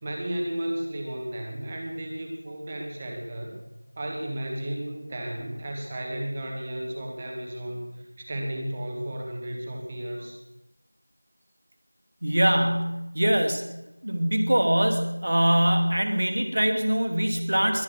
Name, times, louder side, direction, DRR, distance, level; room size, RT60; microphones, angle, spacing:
voice 1, 0.0-3.6 4.0-10.4, right 1 dB, 5° right, 1 dB, 0.7 m, -33 dB
voice 2, 12.2-13.7 14.0-17.8, right 1 dB, 20° right, 6 dB, 1.1 m, -23 dB
21.5 x 9.7 x 6.1 m, 0.98 s
figure-of-eight pair, 180°, 0 cm